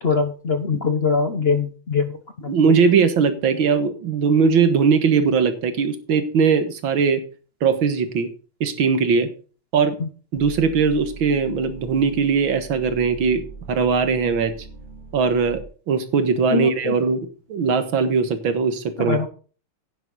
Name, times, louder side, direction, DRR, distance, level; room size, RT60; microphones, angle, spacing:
voice 1, 0.0-2.2 2.4-2.5 10.0-10.1 16.5-17.0 19.0-19.3, left 5 dB, 40° left, 8 dB, 0.9 m, -22 dB
voice 2, 2.5-7.2 7.6-8.3 8.6-9.3 9.7-10.0 10.3-13.4 13.7-14.5 15.1-17.2 17.5-19.2, right 5 dB, 80° right, 10 dB, 2.2 m, -20 dB
sound 1, 10.3-15.6, right 3 dB, 85° left, 4.4 m, -40 dB
10.5 x 9.8 x 4.0 m, 0.37 s
omnidirectional pair, 2.1 m